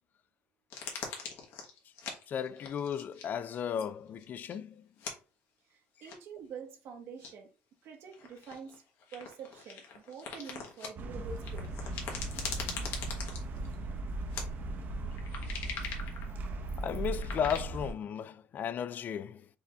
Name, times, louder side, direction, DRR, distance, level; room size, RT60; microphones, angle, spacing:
sound 1, 0.7-3.2 3.5-3.9 4.2-4.6 5.0-5.1 6.0-6.4 7.2-7.3 8.1-10.9 11.4-13.8 14.3-14.4 14.9-17.6, left 5 dB, 65° left, 1.2 m, -42 dB
voice 1, 2.3-4.9 15.8-16.0 16.8-19.5, left 8 dB, 45° left, 0.3 m, -35 dB
voice 2, 5.7-7.5 7.8-8.8 9.1-11.7, right 6 dB, 65° right, 1.1 m, -46 dB
sound 2, 11.0-17.9, right 2 dB, 45° right, 0.8 m, -38 dB
4.7 x 2.6 x 3.4 m
cardioid pair, 115°, 4 cm